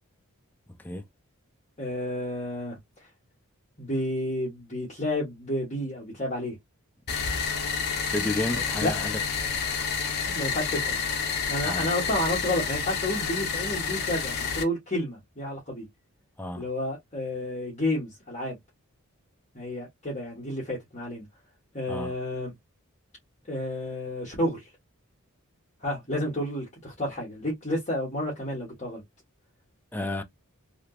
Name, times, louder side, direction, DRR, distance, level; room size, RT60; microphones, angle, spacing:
voice 1, 1.8-2.8 3.8-6.6 8.5-9.1 10.3-11.0 11.5-15.9 16.6-18.6 19.5-21.2 21.7-22.5 23.5-24.7 25.8-29.0, left 1 dB, 30° left, 1.2 m, -31 dB
sound 1, 7.1-14.6, left 6 dB, 45° left, 0.8 m, -29 dB
voice 2, 8.1-9.2 11.6-11.9 16.4-16.6 21.9-22.1 29.9-30.2, left 1 dB, 10° left, 0.4 m, -31 dB
3.4 x 2.8 x 2.3 m
head